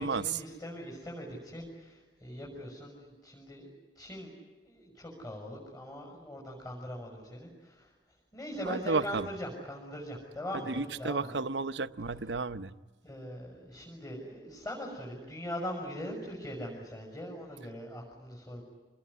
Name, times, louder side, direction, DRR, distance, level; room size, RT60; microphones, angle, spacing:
voice 1, 0.0-3.7 4.0-4.3 4.6-7.9 8.3-11.4 13.0-18.6, equal, 25° left, -2 dB, 6.4 m, -41 dB
voice 2, 8.6-9.3 10.7-12.7, right 3 dB, 75° right, 12 dB, 0.8 m, -32 dB
27.0 x 21.0 x 9.9 m, 1.3 s
head